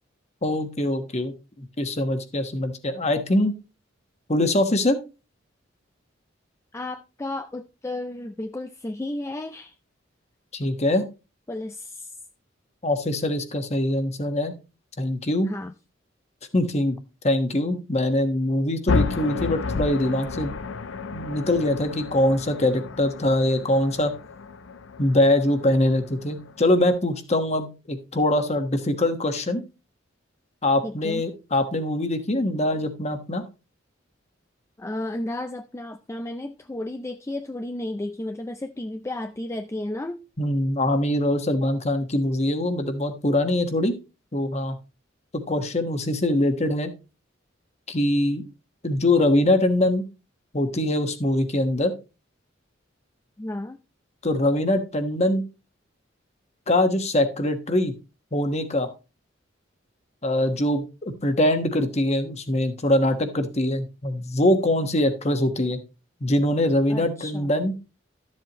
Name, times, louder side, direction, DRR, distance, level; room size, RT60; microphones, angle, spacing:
voice 1, 0.4-3.5 4.3-5.0 10.5-11.1 12.8-14.6 15.0-15.5 16.5-17.0 17.2-20.5 21.1-24.1 25.0-29.6 30.6-33.4 40.4-43.9 44.3-44.7 45.5-46.9 47.9-48.4 48.8-50.0 50.5-51.9 54.2-55.4 56.7-57.9 58.3-58.9 60.2-65.8 66.2-67.7, left 1 dB, 35° left, 1.3 m, -23 dB
voice 2, 6.7-9.7 11.5-12.1 15.5-15.7 30.8-31.2 34.8-40.2 53.4-53.8 66.9-67.5, left 1 dB, 15° left, 0.4 m, -33 dB
sound 1, 18.9-26.9, left 4 dB, 75° left, 0.5 m, -31 dB
12.5 x 7.6 x 3.0 m
head